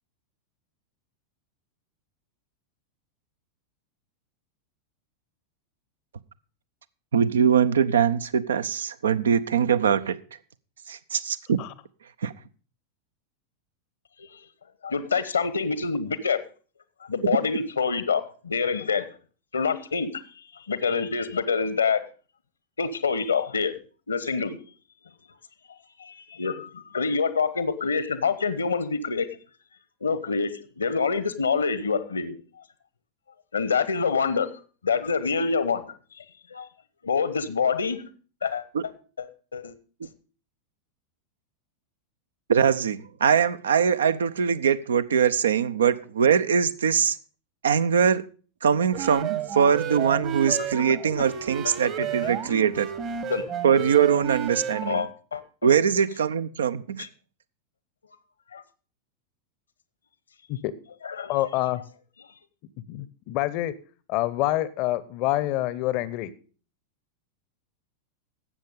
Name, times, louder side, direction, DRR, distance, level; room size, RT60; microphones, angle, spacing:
voice 1, 7.1-10.2 10.9-11.6 12.2-12.3 38.7-38.8 42.5-47.2 47.6-48.2 48.6-52.9 53.6-55.0 55.6-57.1, right 7 dB, 65° right, 15 dB, 0.7 m, -22 dB
voice 2, 14.8-16.4 17.0-19.1 19.5-20.1 20.7-22.0 22.8-23.7 24.1-24.6 26.0-29.3 30.0-32.4 33.5-34.5 34.8-35.9 36.5-36.7 37.0-38.0 38.4-38.6 39.2-39.3 39.5-39.7 50.6-50.9 51.6-51.7 52.2-52.3 53.3-53.4 54.8-55.4 57.0-57.1 58.5-58.6 61.0-61.3, left 5 dB, 75° left, 15 dB, 1.1 m, -26 dB
sound 1, 48.9-55.0, right 8 dB, 35° right, 1.2 m, -32 dB
voice 3, 61.3-61.8 62.9-63.7 64.1-66.3, left 15 dB, 45° left, 17 dB, 0.8 m, -26 dB
12.5 x 8.2 x 5.2 m, 0.38 s
figure-of-eight pair, 90°, 0 cm